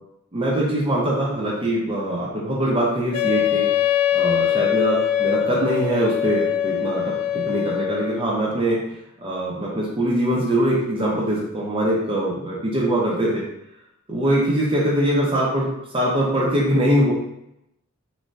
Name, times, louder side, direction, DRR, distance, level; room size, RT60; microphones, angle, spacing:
voice 1, 0.3-3.7 4.1-13.4 14.1-17.1, right 1 dB, 25° right, -5 dB, 0.6 m, -22 dB
Wind instrument woodwind instrument, 3.1-8.2, left 10 dB, 80° left, 0.4 m, -22 dB
3.2 x 2.2 x 2.6 m, 0.81 s
head